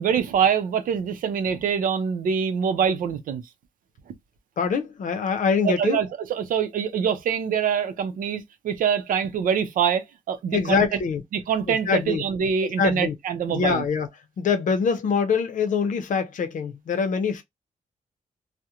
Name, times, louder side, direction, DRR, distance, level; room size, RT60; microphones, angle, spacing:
voice 1, 0.0-3.4 5.6-10.8 11.3-13.8, right 7 dB, 85° right, 0.5 m, -24 dB
voice 2, 4.6-6.0 10.5-11.2 11.7-12.2 12.6-13.1 13.5-14.1 14.4-17.4, left 5 dB, 70° left, 0.6 m, -24 dB
2.9 x 2.1 x 2.3 m
cardioid pair, 85°, 14 cm